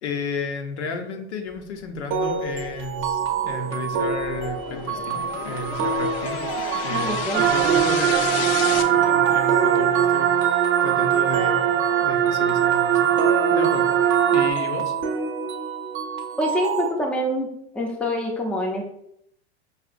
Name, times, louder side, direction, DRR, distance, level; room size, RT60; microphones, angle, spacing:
voice 1, 0.0-6.4 6.8-13.1 13.5-14.0 14.3-14.9, left 3 dB, 85° left, 4 dB, 0.7 m, -33 dB
sound 1, 1.9-8.8, left 7 dB, 55° left, 0.5 m, -33 dB
sound 2, 2.1-16.9, right 5 dB, 35° right, 0.6 m, -28 dB
voice 2, 6.9-7.5 16.4-17.5 17.7-18.8, left 1 dB, 5° left, 1 dB, 0.5 m, -25 dB
sound 3, 7.3-14.5, right 10 dB, 80° right, 0.5 m, -20 dB
4.9 x 2.8 x 2.5 m, 0.74 s
hypercardioid pair, 115°, 33 cm